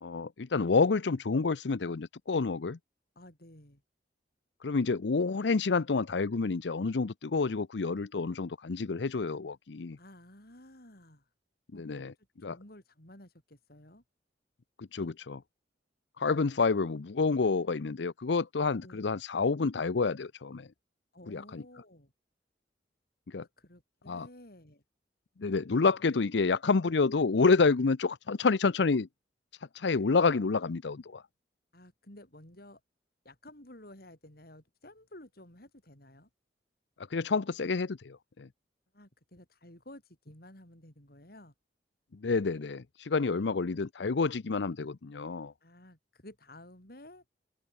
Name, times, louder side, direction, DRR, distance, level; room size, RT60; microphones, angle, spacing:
voice 1, 0.0-2.8 4.6-10.0 11.7-12.1 12.4-12.6 14.8-15.4 16.2-20.7 21.3-21.6 23.3-23.5 24.1-24.3 25.4-29.1 29.8-31.2 37.1-38.5 42.1-45.5, left 4 dB, 80° left, 0.6 m, -28 dB
voice 2, 3.1-3.8 10.0-11.3 11.7-12.0 12.4-14.0 18.8-19.0 21.1-22.1 23.6-24.8 31.7-32.8 33.2-36.3 38.9-41.5 45.6-47.2, left 1 dB, 60° left, 6.6 m, -53 dB
open air
head